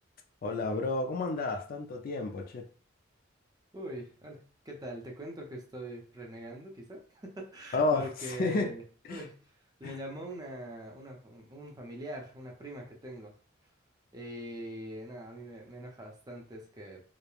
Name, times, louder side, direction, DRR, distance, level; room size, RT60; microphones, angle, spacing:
voice 1, 0.4-2.6 7.7-8.7 9.1-9.2 9.8-9.9, left 3 dB, 45° left, 4 dB, 0.4 m, -31 dB
voice 2, 3.7-8.8 9.1-9.4 9.8-13.3 14.1-17.0, right 1 dB, 20° right, -1 dB, 0.6 m, -43 dB
3.0 x 2.1 x 2.3 m, 0.42 s
head